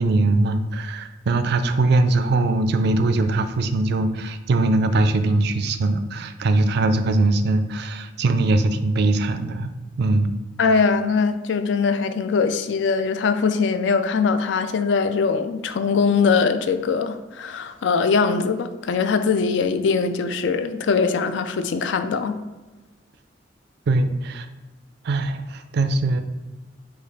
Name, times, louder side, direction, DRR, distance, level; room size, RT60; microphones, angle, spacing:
voice 1, 0.0-9.7 10.0-10.4 23.9-24.5 25.0-26.2, right 2 dB, 60° right, 9 dB, 0.4 m, -21 dB
voice 2, 10.6-22.4, left 5 dB, 70° left, 9 dB, 0.4 m, -21 dB
4.9 x 2.4 x 4.1 m, 1.2 s
head